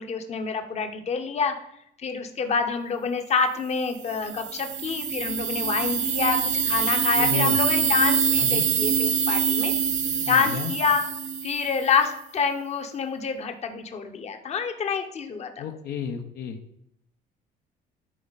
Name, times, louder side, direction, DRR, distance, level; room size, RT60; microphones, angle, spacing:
voice 1, 0.0-1.6 2.0-9.7 10.3-11.0 11.4-15.6, left 5 dB, 40° left, 6 dB, 0.9 m, -27 dB
sound 1, 4.0-11.9, right 6 dB, 45° right, 0.7 m, -25 dB
voice 2, 7.2-7.6 8.4-8.6 10.2-10.7 15.6-16.6, left 8 dB, 70° left, 5 dB, 0.9 m, -32 dB
11.0 x 4.4 x 4.0 m, 0.77 s
cardioid pair, 110°, 17 cm